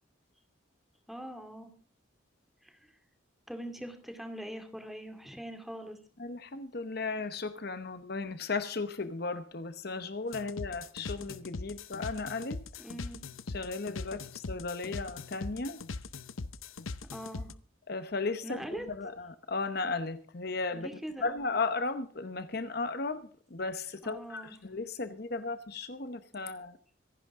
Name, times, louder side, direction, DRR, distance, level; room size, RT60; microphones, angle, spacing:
voice 1, 1.1-1.7 2.6-2.8 3.5-6.0 12.8-13.2 17.1-17.5 18.4-18.9 20.7-21.3 24.0-24.5, equal, ahead, 2.3 m, -42 dB
voice 2, 6.2-12.6 13.5-15.8 17.9-20.9 21.2-26.8, left 3 dB, 50° left, 0.9 m, -35 dB
sound 1, 10.3-17.5, left 3 dB, 80° left, 0.8 m, -41 dB
25.5 x 11.0 x 3.7 m
head